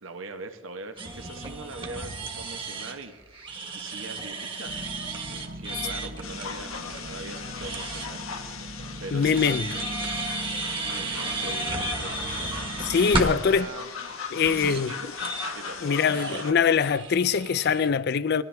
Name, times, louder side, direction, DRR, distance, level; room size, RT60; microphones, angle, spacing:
voice 1, 0.0-3.4 3.7-4.8 5.3-8.2 8.5-8.7 9.0-9.9 10.8-12.6 12.9-13.9 14.3-15.1 15.5-16.6, right 3 dB, 75° right, 1.2 m, -41 dB
sound 1, 1.0-8.1 9.2-13.4 14.1-14.2 14.4-14.8 15.2-17.9, right 2 dB, 25° right, 1.5 m, -34 dB
sound 2, 4.6-13.1, equal, 45° right, 0.8 m, -40 dB
sound 3, 6.2-16.5, left 5 dB, 85° left, 1.5 m, -38 dB
voice 2, 9.1-9.7 12.8-13.7 14.3-14.9 15.8-18.4, left 6 dB, 50° left, 0.4 m, -23 dB
21.0 x 14.0 x 3.4 m
head